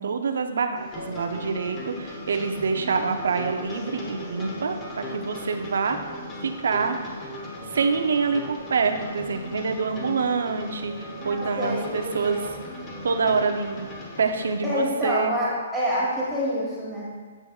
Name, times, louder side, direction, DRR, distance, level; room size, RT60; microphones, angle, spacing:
voice 1, 0.0-6.0 6.4-7.0 7.7-12.4 13.0-13.9 14.2-15.3, right 5 dB, 75° right, 6 dB, 0.6 m, -26 dB
sound 1, 0.8-14.6, left 1 dB, 25° left, 1.2 m, -37 dB
voice 2, 11.2-12.4 14.6-17.1, equal, ahead, -9 dB, 1.7 m, -27 dB
9.1 x 5.8 x 2.4 m, 1.5 s
hypercardioid pair, 145°, 0 cm